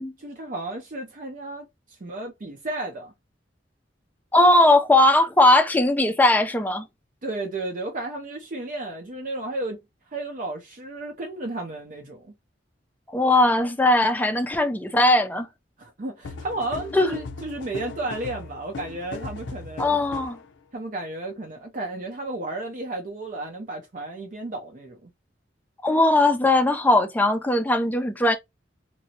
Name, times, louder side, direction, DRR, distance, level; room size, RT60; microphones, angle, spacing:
voice 1, 0.2-3.1 7.2-9.8 10.1-12.3 15.8-20.0 20.7-25.1, right 2 dB, 50° right, 0.6 m, -33 dB
voice 2, 4.3-6.9 13.1-15.5 16.9-17.2 19.8-20.4 25.8-28.4, left 1 dB, 10° left, 0.4 m, -19 dB
sound 1, 16.2-20.4, left 4 dB, 85° left, 0.5 m, -37 dB
3.0 x 2.6 x 2.8 m
head